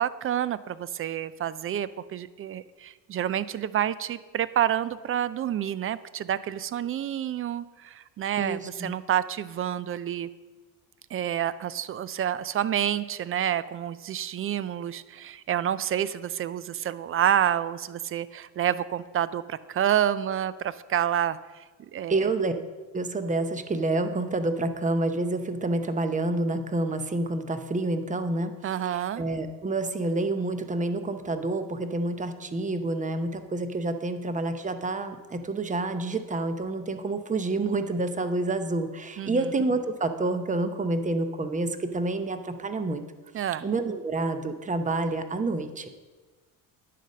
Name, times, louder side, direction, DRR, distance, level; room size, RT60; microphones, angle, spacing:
voice 1, 0.0-10.3 11.1-21.4 21.9-22.3 28.6-29.2 39.2-39.5 43.3-43.7, right 10 dB, 30° right, 17 dB, 0.4 m, -28 dB
voice 2, 8.4-8.9 22.1-22.5 22.9-28.5 29.2-43.0 43.6-45.9, right 2 dB, 15° right, 9 dB, 0.7 m, -28 dB
10.0 x 4.2 x 6.3 m, 1.3 s
supercardioid pair, 75°, 45 cm